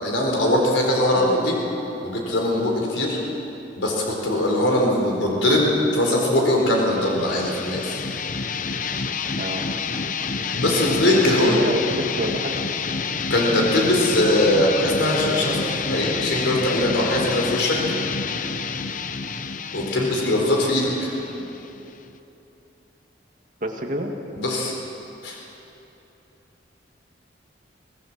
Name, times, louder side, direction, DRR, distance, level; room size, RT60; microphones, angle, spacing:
voice 1, 0.0-1.6 2.0-3.2 3.7-8.0 10.5-11.5 13.3-17.8 19.7-21.1 24.4-24.7 25.2-25.4, left 1 dB, 80° left, -1 dB, 4.4 m, -21 dB
voice 2, 1.1-1.4 9.4-9.7 11.1-12.6 23.6-24.2, right 1 dB, 45° right, 2 dB, 2.1 m, -28 dB
sound 1, 6.7-22.2, left 5 dB, 45° left, 0.7 m, -28 dB
24.5 x 17.5 x 7.5 m, 3.0 s
head